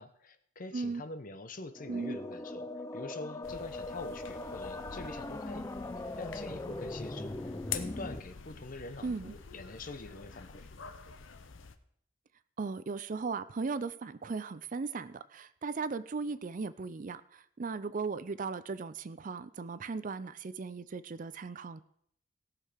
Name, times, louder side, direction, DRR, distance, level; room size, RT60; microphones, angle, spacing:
voice 1, 0.0-10.7, left 2 dB, 45° left, 10 dB, 0.8 m, -45 dB
sound 1, 1.7-8.2, left 2 dB, 15° left, 0.5 m, -40 dB
voice 2, 1.9-2.2 9.0-9.3 12.6-21.8, right 4 dB, 40° right, 15 dB, 0.4 m, -37 dB
sound 2, 3.4-11.8, left 7 dB, 75° left, 0.8 m, -46 dB
17.5 x 6.5 x 5.0 m, 0.69 s
head